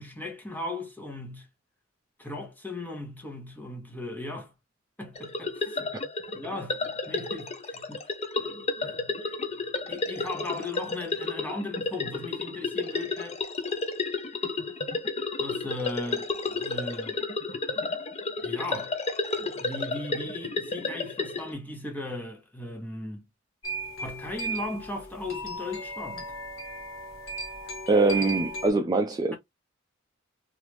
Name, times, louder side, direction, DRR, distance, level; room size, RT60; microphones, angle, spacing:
voice 1, 0.0-1.5 2.2-4.5 5.0-5.9 6.3-8.0 8.4-13.4 15.4-17.2 18.4-18.9 19.4-23.3 24.0-26.3, left 2 dB, 10° left, 1.1 m, -37 dB
sound 1, 5.2-21.5, left 3 dB, 30° left, 0.6 m, -32 dB
sound 2, 23.6-28.7, right 2 dB, 70° left, 1.0 m, -36 dB
voice 2, 27.9-29.3, right 3 dB, 20° right, 0.3 m, -23 dB
3.2 x 2.5 x 3.0 m
head